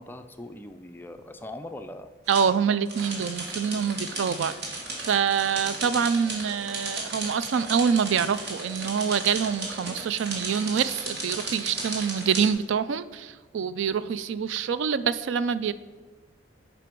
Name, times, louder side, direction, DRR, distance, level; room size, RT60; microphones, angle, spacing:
voice 1, 0.0-2.1 2.5-2.7, left 1 dB, 10° left, 7 dB, 0.3 m, -41 dB
sound 1, 2.3-2.4 2.9-12.5, right 2 dB, 55° right, 1.6 m, -35 dB
voice 2, 2.3-15.7, right 7 dB, 70° right, 15 dB, 0.3 m, -26 dB
7.6 x 5.0 x 5.2 m, 1.3 s
head